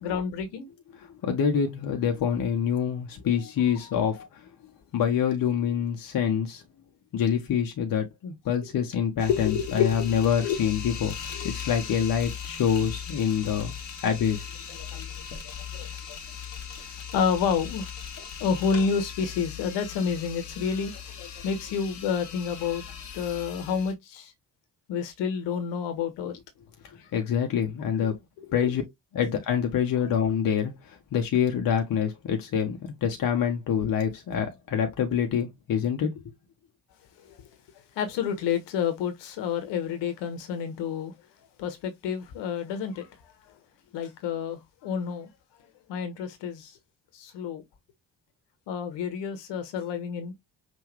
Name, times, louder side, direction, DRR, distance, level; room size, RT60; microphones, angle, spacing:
voice 1, 0.0-0.7 3.2-3.7 4.2-4.3 9.3-10.6 11.3-11.5 14.7-16.2 16.8-17.9 18.2-22.8 23.1-24.3 24.9-26.4 27.0-27.1 28.4-28.8 37.2-37.5 37.9-41.1 41.6-43.1 43.4-43.5 43.9-45.3 45.9-46.8 47.1-47.6 48.7-50.3, left 7 dB, 60° left, 1.3 m, -30 dB
voice 2, 1.2-4.2 4.9-6.6 7.1-11.1 11.4-13.7 14.0-14.5 27.1-28.1 28.5-28.8 29.1-30.7 31.1-36.1, left 8 dB, 45° left, 1.1 m, -26 dB
sound 1, 9.2-23.9, left 8 dB, 80° left, 0.9 m, -39 dB
5.6 x 2.7 x 3.3 m
figure-of-eight pair, 40°, 48 cm